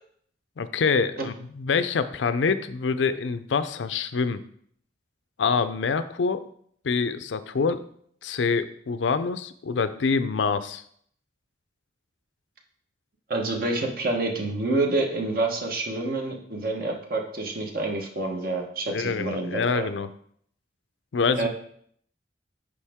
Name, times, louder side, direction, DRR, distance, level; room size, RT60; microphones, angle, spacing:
voice 1, 0.6-4.4 5.4-6.5 6.8-7.8 8.2-10.8 18.9-20.1 21.1-21.5, left 5 dB, 75° left, 12 dB, 0.5 m, -25 dB
voice 2, 13.3-19.9 21.4-21.5, right 2 dB, 50° right, 2 dB, 1.1 m, -28 dB
8.3 x 5.0 x 3.5 m, 0.64 s
head